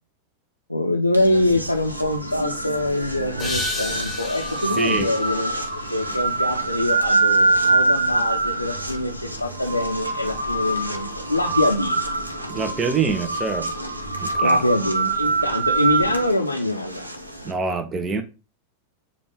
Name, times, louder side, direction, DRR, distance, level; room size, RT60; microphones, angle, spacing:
voice 1, 0.7-5.5 5.8-12.2 14.4-17.1, left 1 dB, 85° left, 0.5 m, -24 dB
sound 1, 1.1-17.5, right 3 dB, 85° right, 0.7 m, -25 dB
sound 2, 3.4-6.5, left 4 dB, 10° left, 1.1 m, -34 dB
voice 2, 4.8-5.1 12.5-13.7 14.2-14.6 17.4-18.2, right 5 dB, 20° right, 0.6 m, -25 dB
6.7 x 2.4 x 3.3 m
figure-of-eight pair, 90°, 0 cm